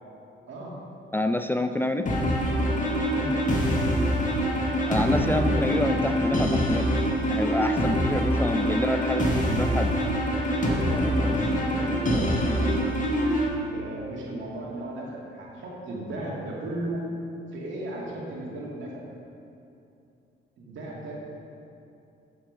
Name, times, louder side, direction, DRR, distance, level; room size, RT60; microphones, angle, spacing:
voice 1, 0.5-0.8 3.1-3.4 8.4-8.6 10.2-12.7 13.6-17.0 17.5-18.9 20.6-21.1, right 1 dB, 75° right, -4 dB, 2.4 m, -36 dB
voice 2, 1.1-2.1 4.9-6.9 7.3-9.9, left 1 dB, 10° left, 7 dB, 0.4 m, -27 dB
sound 1, 2.1-13.5, equal, 40° left, 1.6 m, -25 dB
7.2 x 7.0 x 6.8 m, 2.7 s
cardioid pair, 90°, 20 cm